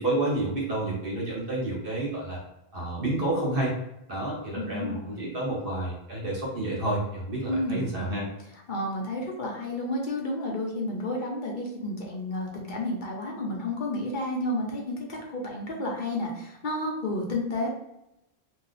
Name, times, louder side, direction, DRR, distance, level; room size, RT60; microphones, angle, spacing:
voice 1, 0.0-2.4 2.7-3.8 4.1-8.3, right 2 dB, 60° right, -4 dB, 1.4 m, -29 dB
voice 2, 4.5-5.3 7.5-8.2 8.7-17.7, left 1 dB, 55° left, -1 dB, 0.8 m, -31 dB
2.8 x 2.3 x 4.0 m, 0.85 s
omnidirectional pair, 1.0 m